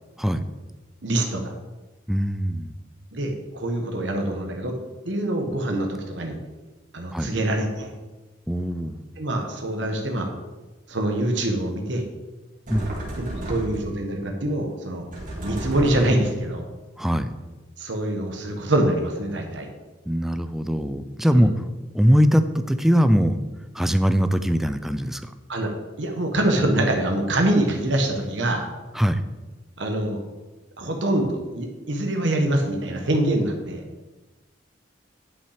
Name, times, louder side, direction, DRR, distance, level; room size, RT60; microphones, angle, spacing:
voice 1, 1.0-1.5 3.1-4.8 5.0-6.4 6.9-7.9 9.2-10.3 10.9-12.0 13.1-15.1 15.4-16.6 17.8-19.7 21.3-21.5 25.5-25.7 26.0-28.7 29.8-30.2 30.8-33.8, right 1 dB, 75° right, 3 dB, 1.3 m, -24 dB
voice 2, 2.1-2.8 7.1-7.3 8.5-9.0 12.7-12.9 17.0-17.3 20.1-21.7 21.9-23.4 23.7-25.3 28.9-29.2, equal, ahead, 10 dB, 0.4 m, -21 dB
sound 1, 12.7-14.0 15.1-16.4, right 1 dB, 45° right, 2.3 m, -32 dB
11.0 x 5.8 x 5.0 m, 1.2 s
head